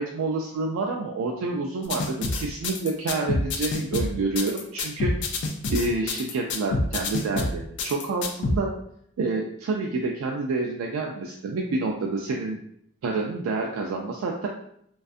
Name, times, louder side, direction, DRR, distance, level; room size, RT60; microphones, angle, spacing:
voice 1, 0.0-5.4 5.7-8.7 9.2-12.6 13.0-14.5, right 3 dB, 80° right, 1 dB, 0.3 m, -28 dB
sound 1, 1.9-8.6, left 2 dB, 55° left, 0.3 m, -27 dB
2.5 x 2.3 x 2.4 m, 0.71 s
head